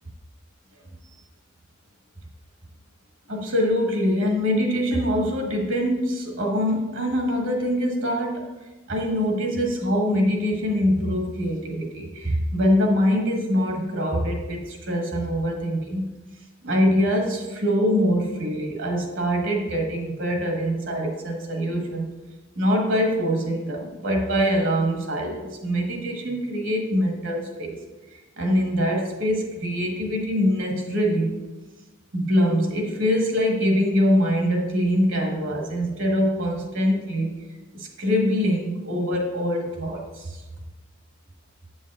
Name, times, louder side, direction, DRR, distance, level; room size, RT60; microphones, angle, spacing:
voice 1, 3.3-8.5 8.9-16.0 16.6-22.1 22.5-27.8 28.4-31.4 32.1-37.4 37.7-40.4, equal, 65° right, 1 dB, 1.4 m, -24 dB
7.9 x 7.0 x 2.5 m, 1.2 s
head